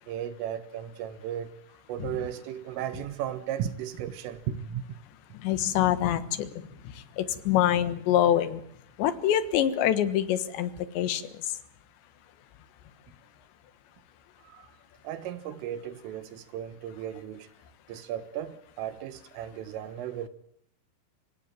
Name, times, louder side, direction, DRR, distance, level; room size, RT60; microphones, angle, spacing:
voice 1, 0.1-1.5 1.9-4.9 14.4-14.7 15.0-17.5 17.9-20.3, right 10 dB, 90° right, 4.0 m, -35 dB
voice 2, 5.4-6.5 7.2-8.6 9.0-10.7 11.0-11.2, left 11 dB, 70° left, 3.5 m, -25 dB
25.5 x 18.0 x 9.0 m
omnidirectional pair, 5.6 m